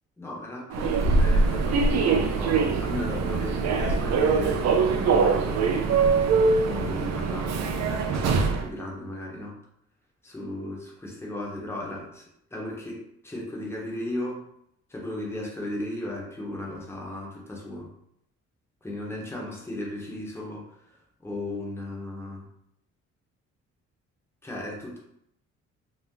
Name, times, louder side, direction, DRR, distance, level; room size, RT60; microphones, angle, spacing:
voice 1, 0.2-6.0 6.6-9.5 10.2-12.2 12.5-14.5 14.9-17.9 18.8-22.5 24.4-25.0, left 1 dB, 10° left, -3 dB, 0.9 m, -36 dB
Human voice / Subway metro underground, 0.7-8.7, right 4 dB, 60° right, 0.5 m, -23 dB
2.7 x 2.1 x 3.7 m, 0.74 s
cardioid pair, 90°, 30 cm